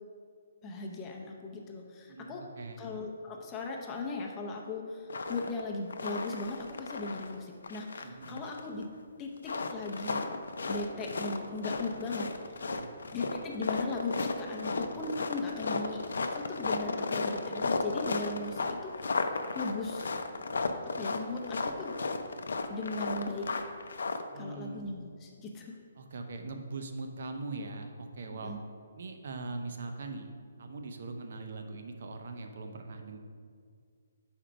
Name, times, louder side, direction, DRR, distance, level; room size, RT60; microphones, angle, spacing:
voice 1, 0.6-2.5 2.8-8.9 9.2-10.3 10.7-12.3 13.1-16.0 16.3-19.2 19.5-20.1 21.0-21.9 22.7-23.5 24.4-25.7 28.3-28.6, left 3 dB, 20° left, 0 dB, 0.6 m, -38 dB
voice 2, 2.1-2.8 8.0-8.4 12.6-12.9 24.3-24.9 26.0-28.5 28.9-30.3 30.6-33.2, right 3 dB, 60° right, 5 dB, 0.7 m, -41 dB
sound 1, 5.1-5.6 5.9-7.4 7.6-8.8 9.4-24.2, left 3 dB, 75° left, 0.5 m, -34 dB
5.0 x 4.4 x 5.0 m, 2.1 s
hypercardioid pair, 155°, 0 cm